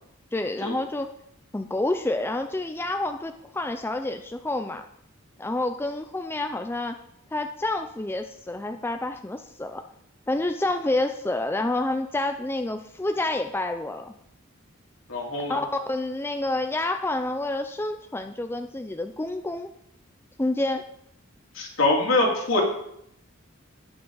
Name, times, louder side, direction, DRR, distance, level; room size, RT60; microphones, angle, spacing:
voice 1, 0.3-1.1 1.5-4.8 5.4-7.0 7.3-9.8 10.3-14.1 15.4-19.7 20.4-20.9, left 2 dB, 10° left, 6 dB, 0.4 m, -28 dB
voice 2, 15.1-15.6 21.5-22.6, left 2 dB, 70° left, -1 dB, 2.8 m, -23 dB
18.0 x 6.1 x 3.9 m, 0.76 s
head